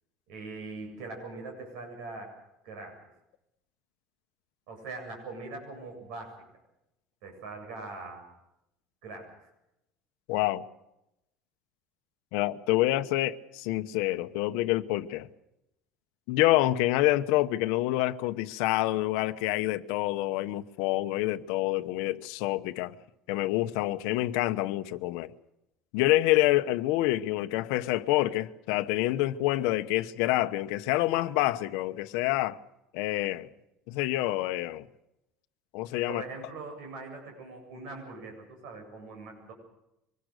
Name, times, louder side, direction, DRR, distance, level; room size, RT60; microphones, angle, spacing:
voice 1, 0.3-2.3 2.6-3.0 4.7-6.3 7.2-8.2 9.0-9.5 36.1-39.5, right 3 dB, 65° right, 7.7 m, -42 dB
voice 2, 10.3-10.6 12.3-15.3 16.3-22.9 23.3-25.3 25.9-32.6 32.9-33.5 33.9-34.8 35.7-36.2, left 16 dB, 65° left, 1.0 m, -27 dB
24.5 x 20.5 x 6.6 m
cardioid pair, 175°, 0 cm